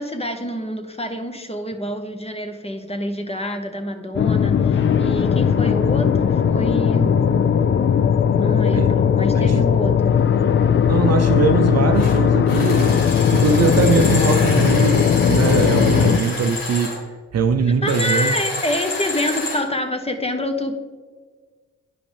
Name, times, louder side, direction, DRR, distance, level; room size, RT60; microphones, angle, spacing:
voice 1, 0.0-7.1 8.4-10.2 14.0-14.2 17.8-20.7, equal, 20° left, 5 dB, 1.1 m, -27 dB
sound 1, 4.1-16.2, left 7 dB, 35° left, 0.4 m, -18 dB
voice 2, 9.3-9.7 10.9-13.0 13.3-16.9 17.3-18.3, right 5 dB, 50° right, 7 dB, 0.6 m, -21 dB
sound 2, 11.9-12.2 12.5-17.0 17.8-19.6, left 2 dB, 80° left, 2.1 m, -29 dB
9.8 x 5.0 x 3.4 m, 1.5 s
supercardioid pair, 50°, 34 cm